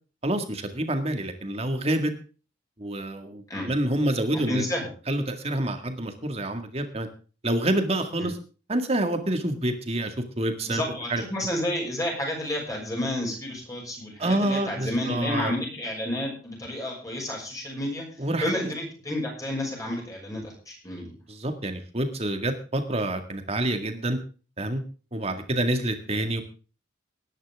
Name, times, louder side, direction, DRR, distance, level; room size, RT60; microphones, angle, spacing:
voice 1, 0.2-2.1 2.8-4.7 5.1-7.1 7.4-8.4 8.7-10.8 11.1-11.2 14.2-15.5 18.2-18.5 21.3-24.2 24.6-24.8 25.1-26.4, right 1 dB, 35° right, 6 dB, 2.0 m, -27 dB
voice 2, 4.3-4.9 10.7-18.1 18.4-21.1, left 1 dB, 20° left, -1 dB, 6.4 m, -30 dB
19.5 x 10.5 x 3.6 m, 0.36 s
head